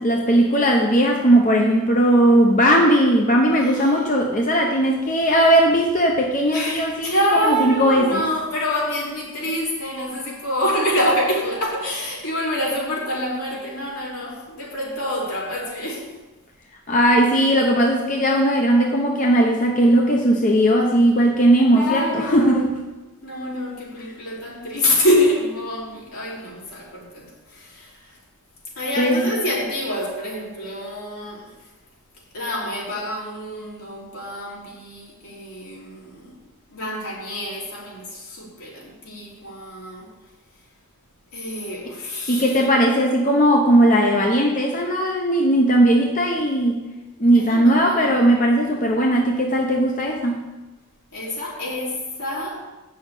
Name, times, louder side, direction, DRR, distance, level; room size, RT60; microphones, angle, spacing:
voice 1, 0.0-8.2 16.9-22.7 29.0-29.3 42.3-46.8 47.2-50.4, right 1 dB, 35° left, 1 dB, 0.8 m, -18 dB
voice 2, 3.6-4.0 6.5-16.1 21.7-22.7 23.2-28.2 28.8-31.7 32.3-36.4 36.7-40.1 41.3-42.7 47.3-48.2 51.1-52.6, equal, 80° left, -5 dB, 3.7 m, -26 dB
8.5 x 6.4 x 7.1 m, 1.1 s
head